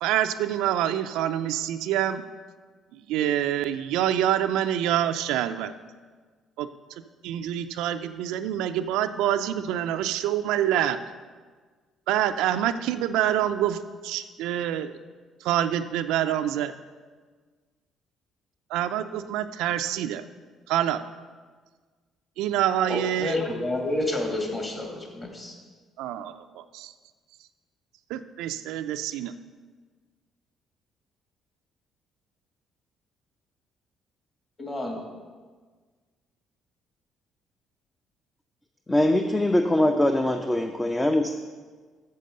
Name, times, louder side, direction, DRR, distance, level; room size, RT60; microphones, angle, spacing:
voice 1, 0.0-2.2 2.9-5.7 6.6-6.7 7.2-11.0 12.1-15.0 15.4-16.7 18.7-20.2 20.7-21.0 22.4-23.4 26.0-26.9 28.1-29.3, right 11 dB, 85° right, 10 dB, 0.4 m, -26 dB
voice 2, 22.9-25.5 34.6-35.0, left 2 dB, 30° left, 1 dB, 2.3 m, -29 dB
voice 3, 38.9-41.3, left 1 dB, 15° left, 6 dB, 0.5 m, -22 dB
6.8 x 6.5 x 6.6 m, 1.5 s
supercardioid pair, 80°, 0 cm